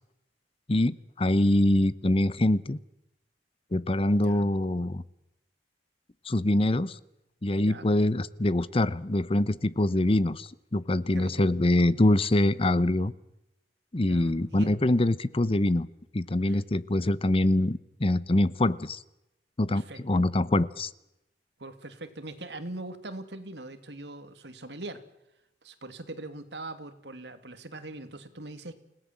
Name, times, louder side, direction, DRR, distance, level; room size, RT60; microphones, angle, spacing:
voice 1, 0.7-2.8 3.7-5.0 6.3-7.0 7.4-13.1 13.9-15.9 16.1-19.0 19.6-20.9, left 1 dB, 35° left, 18 dB, 0.8 m, -24 dB
voice 2, 11.1-11.5 13.9-14.7 16.5-16.6 19.7-20.3 21.6-25.0 25.6-28.7, right 2 dB, 75° right, 9 dB, 2.6 m, -42 dB
29.0 x 17.5 x 7.6 m, 0.88 s
head